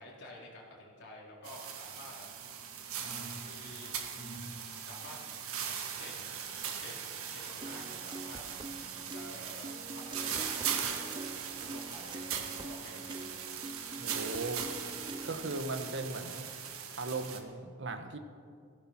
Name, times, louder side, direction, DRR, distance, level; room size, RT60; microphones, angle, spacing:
voice 1, 0.0-2.3 3.0-3.9 4.8-5.2 6.0-6.3 6.8-8.4 9.1-13.3, left 1 dB, 50° left, -4 dB, 3.9 m, -50 dB
sound 1, 1.4-17.4, right 8 dB, 70° right, 1.6 m, -40 dB
sound 2, 2.3-8.0 8.5-9.6 10.1-10.3, right 1 dB, 25° left, 3.2 m, -53 dB
Piano, 7.6-15.6, right 2 dB, 20° right, 0.5 m, -45 dB
voice 2, 14.0-14.7 15.2-16.5 17.0-18.2, right 3 dB, 55° right, 7 dB, 1.2 m, -38 dB
16.0 x 15.5 x 5.9 m, 2.3 s
head